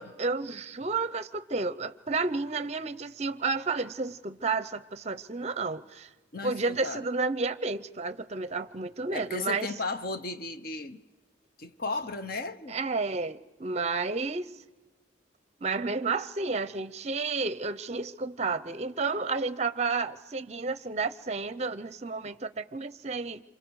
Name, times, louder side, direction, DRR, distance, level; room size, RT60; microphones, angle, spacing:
voice 1, 0.0-6.1 6.4-9.7 12.7-14.5 15.6-23.4, right 4 dB, 35° right, 0.6 m, -31 dB
voice 2, 6.3-7.0 9.1-11.0 11.6-12.8, left 3 dB, 50° left, 0.9 m, -35 dB
27.5 x 25.0 x 4.8 m
head